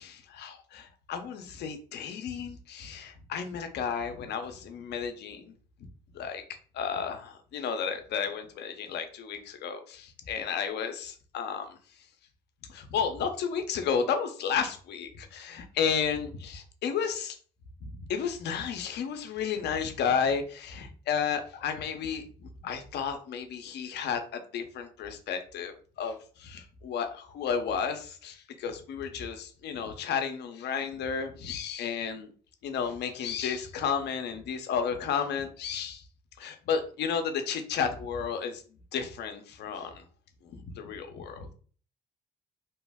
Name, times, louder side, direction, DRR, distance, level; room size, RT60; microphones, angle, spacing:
voice 1, 0.0-5.5 6.1-6.4 6.7-11.8 12.7-17.4 17.8-22.2 22.6-32.3 32.6-36.0 36.4-38.6 38.9-40.0 40.4-41.5, left 7 dB, 70° left, 7 dB, 0.7 m, -32 dB
2.9 x 2.2 x 3.4 m, 0.41 s
supercardioid pair, 65°, 18 cm